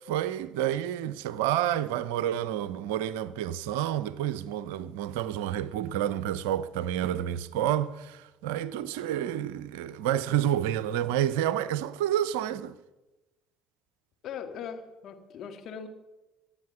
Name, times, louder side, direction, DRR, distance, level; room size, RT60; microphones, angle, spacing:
voice 1, 0.1-12.7, right 11 dB, 70° right, 0.6 m, -29 dB
voice 2, 14.2-15.9, left 7 dB, 55° left, 2.0 m, -40 dB
24.0 x 8.3 x 6.0 m
figure-of-eight pair, 55°, 0 cm